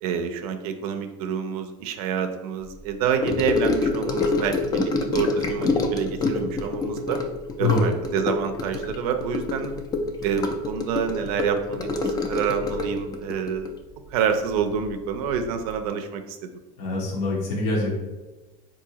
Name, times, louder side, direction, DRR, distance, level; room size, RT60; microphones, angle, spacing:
voice 1, 0.0-7.2 7.6-9.7 10.2-13.7 14.1-16.5, right 7 dB, 75° right, 7 dB, 0.4 m, -27 dB
Gurgling / Sink (filling or washing) / Trickle dribble, 3.2-14.9 15.1-15.5 15.7-15.8, left 3 dB, 20° left, 0.3 m, -26 dB
voice 2, 7.6-7.9 16.8-17.9, left 2 dB, 65° left, -3 dB, 0.8 m, -24 dB
3.8 x 2.6 x 2.8 m, 1.2 s
supercardioid pair, 130°, 19 cm